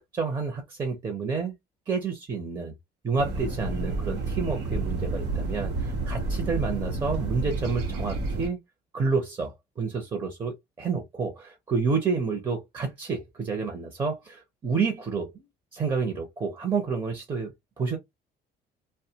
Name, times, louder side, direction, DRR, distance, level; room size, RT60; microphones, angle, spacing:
voice 1, 0.1-1.5 1.9-2.7 3.0-8.6 8.9-15.4 15.7-18.0, right 5 dB, 25° right, 0.7 m, -29 dB
sound 1, 3.2-8.5, right 2 dB, 85° right, 0.9 m, -30 dB
2.3 x 2.2 x 2.7 m
cardioid pair, 110°, 17 cm